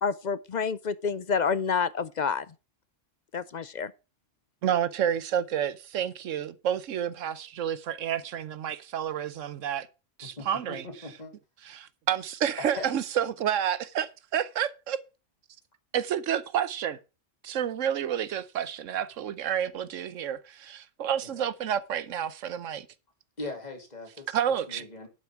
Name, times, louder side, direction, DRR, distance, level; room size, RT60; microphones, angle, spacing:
voice 1, 0.0-2.4 3.3-3.9, left 5 dB, 50° left, 0.5 m, -28 dB
voice 2, 4.6-9.9 10.2-10.9 11.6-15.0 15.9-17.0 17.4-22.9 24.3-24.8, right 9 dB, 80° right, 1.1 m, -30 dB
voice 3, 10.4-11.3 12.6-12.9 21.2-21.5 23.4-24.4 24.7-25.1, left 2 dB, 35° left, 2.9 m, -39 dB
11.0 x 5.8 x 5.8 m
omnidirectional pair, 1.3 m